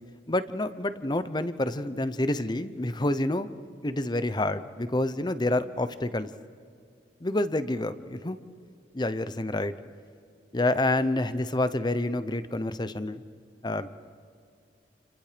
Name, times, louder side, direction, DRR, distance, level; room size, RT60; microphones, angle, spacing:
voice 1, 0.3-3.5 3.8-6.3 7.2-8.4 8.9-9.7 10.5-13.2 13.6-13.9, left 1 dB, 25° left, 12 dB, 0.8 m, -28 dB
29.5 x 29.0 x 5.1 m, 2.3 s
head